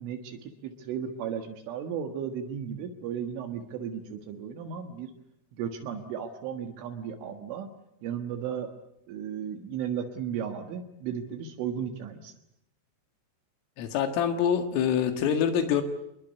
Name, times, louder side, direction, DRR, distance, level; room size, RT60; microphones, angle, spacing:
voice 1, 0.0-5.1 5.5-7.7 8.0-8.7 9.1-12.4 15.7-15.8, right 8 dB, 75° right, 5 dB, 4.0 m, -35 dB
voice 2, 13.8-15.8, left 8 dB, 80° left, 7 dB, 4.4 m, -25 dB
27.0 x 21.5 x 8.2 m, 0.81 s
omnidirectional pair, 5.8 m